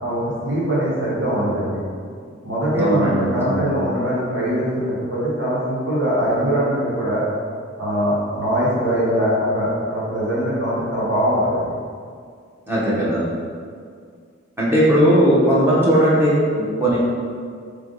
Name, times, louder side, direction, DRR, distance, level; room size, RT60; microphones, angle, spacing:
voice 1, 0.0-1.8 2.4-7.2 7.8-11.6, equal, 65° right, -8 dB, 1.5 m, -22 dB
voice 2, 2.8-3.7 12.7-13.2 14.6-17.0, equal, 10° right, -8 dB, 0.9 m, -18 dB
3.5 x 3.4 x 3.8 m, 2.1 s
head